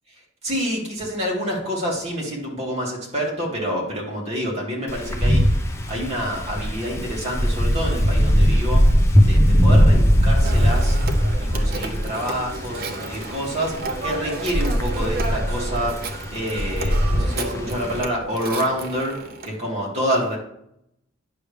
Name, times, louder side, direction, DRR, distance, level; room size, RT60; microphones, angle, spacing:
voice 1, 0.4-5.4 5.9-8.9 9.2-11.0 11.4-16.0 16.3-19.2 19.4-20.4, equal, 35° right, -3 dB, 2.5 m, -27 dB
Wind, 4.9-18.0, equal, 15° left, 0.8 m, -20 dB
Telephone, 10.4-19.5, right 2 dB, 50° right, 0.8 m, -33 dB
9.5 x 6.6 x 3.5 m, 0.76 s
head